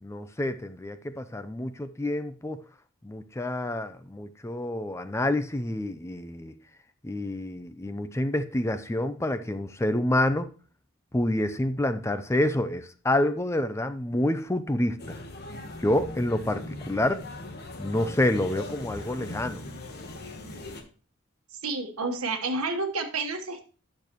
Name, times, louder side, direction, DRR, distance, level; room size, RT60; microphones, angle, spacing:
voice 1, 0.0-2.6 3.0-6.5 7.0-10.5 11.1-15.2 15.8-17.2 17.8-19.6, left 1 dB, 15° left, 0.4 m, -28 dB
sound 1, 15.0-20.8, left 2 dB, 50° left, 1.2 m, -40 dB
voice 2, 21.6-23.6, right 3 dB, 90° right, 1.4 m, -30 dB
10.5 x 6.7 x 3.0 m
head